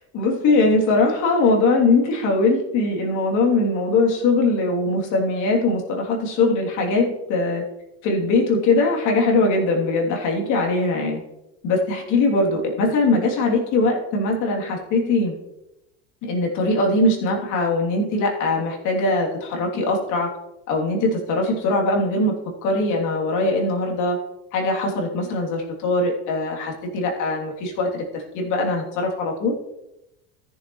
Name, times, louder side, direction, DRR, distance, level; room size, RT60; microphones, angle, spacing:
voice 1, 0.1-7.6 8.0-11.2 11.6-15.3 16.2-20.3 20.7-22.3 22.6-24.2 24.5-29.6, left 2 dB, 65° left, 0 dB, 3.0 m, -21 dB
14.0 x 7.1 x 3.1 m, 0.88 s
supercardioid pair, 90°, 33 cm